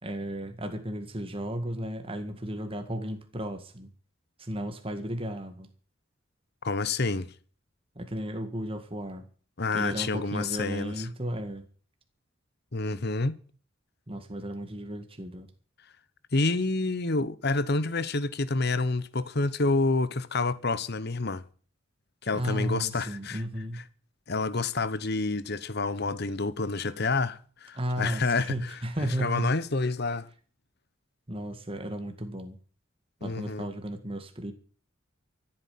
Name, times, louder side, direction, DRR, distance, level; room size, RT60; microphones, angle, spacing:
voice 1, 0.0-3.9 4.4-5.7 8.0-9.3 9.7-11.7 14.1-15.5 22.3-23.8 27.7-29.5 31.3-32.6 33.2-34.5, equal, 30° right, 1.9 m, -34 dB
voice 2, 6.6-7.3 9.6-11.1 12.7-13.4 16.3-21.4 22.2-23.4 24.3-28.5 29.2-30.3 33.2-33.7, left 3 dB, 55° left, 1.1 m, -28 dB
14.0 x 9.0 x 8.7 m
head